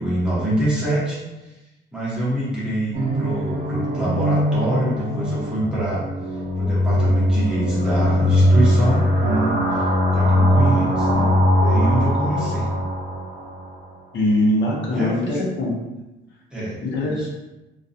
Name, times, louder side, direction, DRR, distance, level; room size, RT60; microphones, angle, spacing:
voice 1, 0.0-1.6 1.9-11.3 11.6-12.7 14.9-15.4 16.5-17.3, right 1 dB, 5° right, -10 dB, 0.9 m, -25 dB
sound 1, 2.9-13.7, equal, 40° right, 0.5 m, -20 dB
voice 2, 14.1-15.7 16.8-17.3, left 1 dB, 65° left, -3 dB, 0.7 m, -22 dB
2.3 x 2.2 x 2.6 m, 1.0 s
cardioid pair, 145°, 20 cm